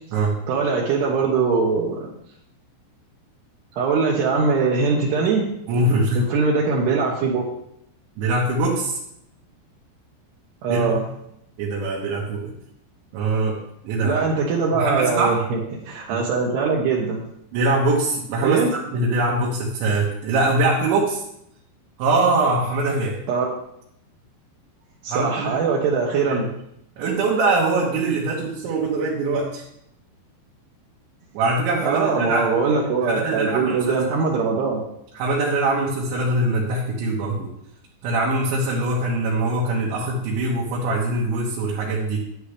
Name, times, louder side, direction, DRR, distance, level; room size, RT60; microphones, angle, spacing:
voice 1, 0.5-2.1 3.7-5.5 6.2-7.5 10.6-11.0 14.0-17.2 18.4-18.7 23.3-23.5 25.0-26.5 31.8-34.8, right 4 dB, 75° right, -3 dB, 3.2 m, -22 dB
voice 2, 5.7-6.2 8.2-9.0 10.7-11.0 11.6-12.5 13.1-14.2 14.7-15.4 16.1-16.2 17.5-21.2 22.0-23.2 25.1-25.6 26.3-26.4 27.0-29.6 31.4-32.7 33.0-33.9 35.2-37.5 38.0-42.2, right 2 dB, 90° right, -4 dB, 3.9 m, -23 dB
10.0 x 9.7 x 3.4 m, 0.76 s
omnidirectional pair, 5.1 m